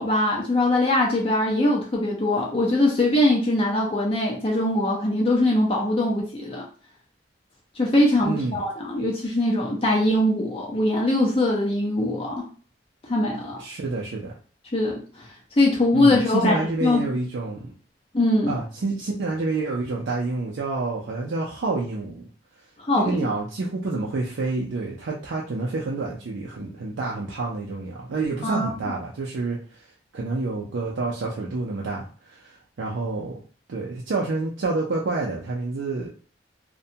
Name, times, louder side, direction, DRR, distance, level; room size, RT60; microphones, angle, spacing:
voice 1, 0.0-6.6 7.8-12.4 13.1-13.6 14.7-15.0 15.6-17.0 18.1-18.5 22.9-23.3 28.4-28.7, left 1 dB, 30° left, -2 dB, 0.5 m, -22 dB
voice 2, 8.2-8.6 13.6-14.3 15.9-17.7 18.5-22.3 22.9-29.8 30.1-33.4 33.7-36.1, right 3 dB, 75° right, -3 dB, 0.5 m, -28 dB
2.6 x 2.2 x 2.7 m, 0.40 s
head